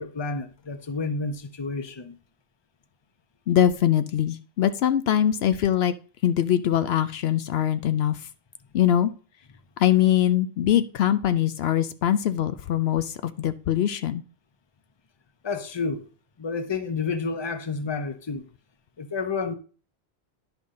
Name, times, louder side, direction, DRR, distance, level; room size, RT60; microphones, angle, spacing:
voice 1, 0.0-2.2 15.4-16.1 16.4-18.4 19.0-19.5, left 4 dB, 30° left, 0.7 m, -30 dB
voice 2, 3.5-5.9 6.2-8.2 8.7-9.1 9.8-14.2, left 11 dB, 75° left, 0.8 m, -22 dB
10.5 x 5.5 x 3.7 m
omnidirectional pair, 1.1 m